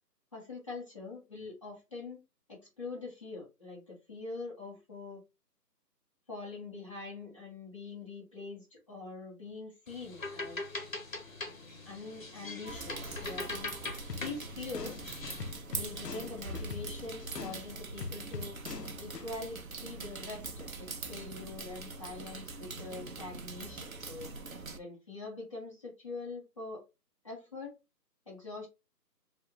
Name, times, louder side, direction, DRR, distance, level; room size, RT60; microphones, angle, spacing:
voice 1, 0.3-2.2 2.5-5.2 6.3-10.6 11.8-13.7 14.2-14.9 15.7-18.6 19.0-24.3 24.7-26.8 27.2-27.7 28.3-28.7, left 3 dB, 20° left, 1.4 m, -44 dB
sound 1, 9.9-15.6, left 3 dB, 50° left, 1.4 m, -42 dB
sound 2, 12.7-24.8, right 3 dB, 55° right, 0.8 m, -43 dB
sound 3, 14.1-19.3, left 4 dB, 75° left, 0.8 m, -43 dB
4.9 x 2.7 x 2.7 m
figure-of-eight pair, 175°, 50 cm